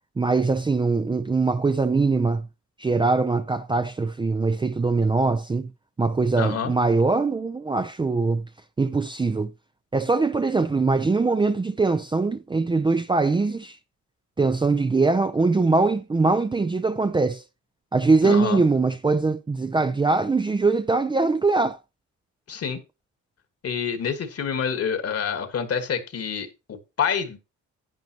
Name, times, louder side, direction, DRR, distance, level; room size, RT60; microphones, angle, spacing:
voice 1, 0.2-2.5 2.8-5.7 6.0-8.4 8.8-9.5 9.9-13.8 14.4-17.4 17.9-21.8, right 3 dB, 15° right, 0.5 m, -22 dB
voice 2, 6.4-6.7 18.2-18.6 22.5-22.8 23.6-27.4, left 7 dB, 55° left, 1.7 m, -27 dB
11.0 x 9.2 x 2.9 m
cardioid pair, 90°, 30 cm